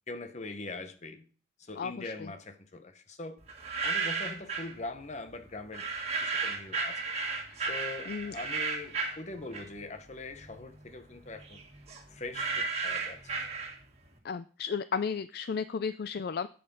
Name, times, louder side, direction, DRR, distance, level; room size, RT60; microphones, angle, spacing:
voice 1, 0.1-1.2 1.6-3.4 3.8-5.9 6.2-7.1 7.7-11.6 12.1-13.3, left 2 dB, 40° left, 1.1 m, -42 dB
voice 2, 1.8-2.3 3.8-3.9 7.5-7.6 8.1-8.4 14.2-16.5, left 6 dB, 55° left, 0.4 m, -34 dB
sound 1, 3.5-4.7 5.7-10.0 10.3-14.1, right 4 dB, 35° right, 2.0 m, -34 dB
8.2 x 8.0 x 5.5 m
head